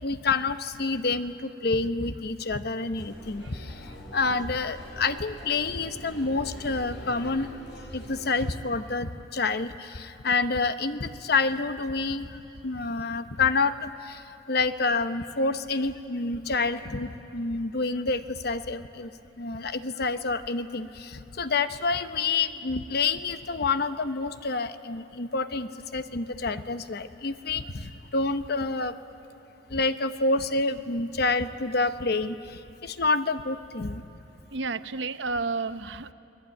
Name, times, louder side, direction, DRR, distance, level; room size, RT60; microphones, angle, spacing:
voice 1, 0.0-7.5 7.9-19.1 19.4-29.0 29.7-34.0, left 3 dB, 60° left, 10 dB, 0.9 m, -28 dB
sound 1, 3.0-8.5, equal, 80° left, 4.9 m, -44 dB
voice 2, 34.5-36.1, right 3 dB, 75° right, 12 dB, 0.8 m, -31 dB
29.5 x 20.0 x 9.2 m, 2.8 s
head